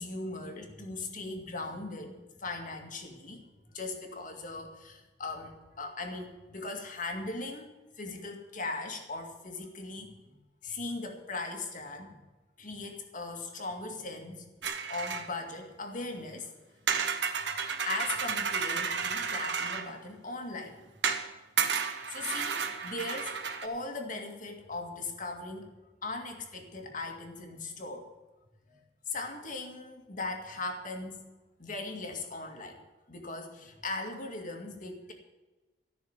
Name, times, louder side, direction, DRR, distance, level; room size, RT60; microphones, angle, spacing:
voice 1, 0.0-3.4 3.7-7.7 8.0-12.2 12.6-14.5 14.9-16.5 17.9-20.8 22.1-25.7 26.0-28.1 28.7-31.2 31.6-32.8 33.1-35.1, left 3 dB, 50° left, 4 dB, 2.2 m, -39 dB
sound 1, 14.6-15.3 16.9-19.9 21.0-21.3 21.6-23.7, right 6 dB, 80° right, 1.3 m, -32 dB
14.5 x 6.4 x 8.8 m, 1.2 s
head